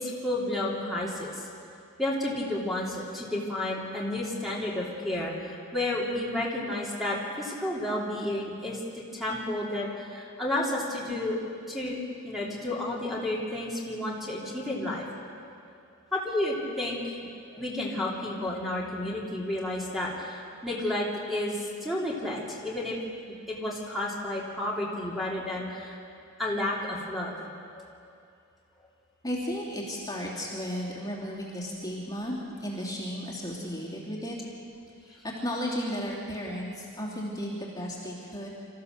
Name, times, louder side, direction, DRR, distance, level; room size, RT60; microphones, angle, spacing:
voice 1, 0.0-1.5 2.0-11.4 11.7-15.0 16.1-17.1 17.5-23.0 23.3-26.0 26.4-27.5 27.7-27.8, left 1 dB, ahead, -5 dB, 3.0 m, -31 dB
voice 2, 29.2-34.4 35.0-38.5, equal, 15° left, -5 dB, 2.9 m, -34 dB
26.5 x 14.5 x 6.7 m, 2.5 s
head